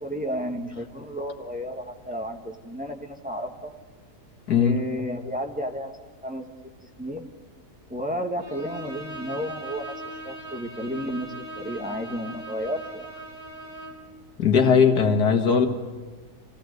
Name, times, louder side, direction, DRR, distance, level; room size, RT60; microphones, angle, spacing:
voice 1, 0.0-3.7 4.6-6.0 6.2-6.4 7.0-7.3 7.9-9.9 10.2-13.1, equal, 5° right, 2 dB, 1.5 m, -32 dB
Bowed string instrument, 8.4-14.1, right 1 dB, 50° right, 5.3 m, -39 dB
voice 2, 14.4-15.7, left 6 dB, 80° left, 5 dB, 2.2 m, -19 dB
27.0 x 17.0 x 8.0 m, 1.4 s
omnidirectional pair, 1.6 m